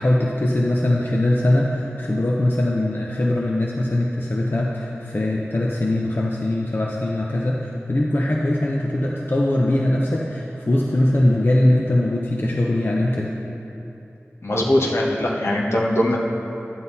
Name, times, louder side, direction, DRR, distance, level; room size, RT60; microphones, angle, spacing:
voice 1, 0.0-13.3, left 1 dB, 50° left, -3 dB, 0.7 m, -21 dB
voice 2, 14.4-16.2, left 1 dB, 70° left, -3 dB, 1.3 m, -21 dB
11.0 x 7.6 x 4.1 m, 2.9 s
wide cardioid pair, 50°, 5 cm